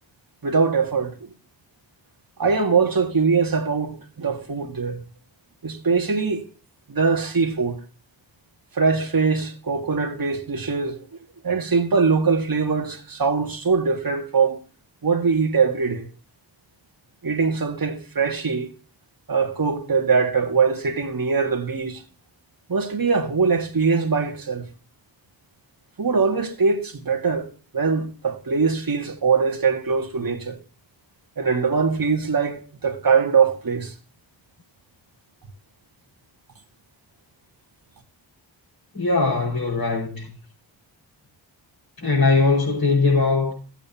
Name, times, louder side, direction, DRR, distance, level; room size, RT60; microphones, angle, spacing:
voice 1, 0.4-1.3 2.4-5.0 5.6-6.4 6.9-7.8 8.7-11.0 11.4-14.6 15.0-16.1 17.2-18.7 19.3-22.0 22.7-24.6 26.0-30.6 31.4-33.9, right 5 dB, 50° right, 2.2 m, -22 dB
voice 2, 38.9-40.2 42.0-43.5, left 3 dB, 50° left, 5.7 m, -20 dB
15.0 x 9.0 x 2.9 m
cardioid pair, 70°, 46 cm